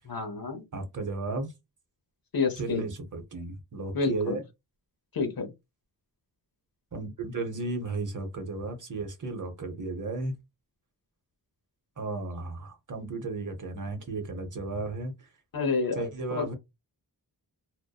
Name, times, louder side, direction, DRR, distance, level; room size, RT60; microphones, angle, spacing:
voice 1, 0.0-0.6 2.3-2.8 3.9-4.4 5.1-5.5 15.5-16.0 16.3-16.5, left 4 dB, 55° left, 0.8 m, -29 dB
voice 2, 0.7-1.5 2.6-4.4 6.9-10.4 12.0-15.3 15.9-16.5, right 3 dB, 45° right, 0.8 m, -34 dB
2.7 x 2.1 x 2.3 m
cardioid pair, 45°, 42 cm